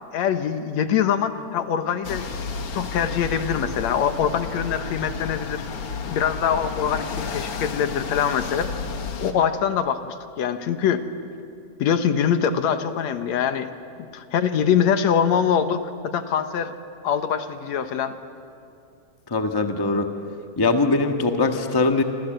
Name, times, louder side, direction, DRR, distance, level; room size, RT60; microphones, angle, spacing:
voice 1, 0.1-2.3 2.7-5.6 6.1-8.8 9.2-11.0 11.8-13.7 14.1-16.7 17.0-18.2, left 8 dB, 70° left, 9 dB, 2.3 m, -23 dB
sound 1, 2.0-9.3, left 5 dB, 55° left, 2.4 m, -32 dB
voice 2, 19.3-20.1 20.6-22.0, left 3 dB, 20° left, 5 dB, 0.5 m, -21 dB
28.0 x 26.5 x 7.9 m, 2.6 s
omnidirectional pair, 3.3 m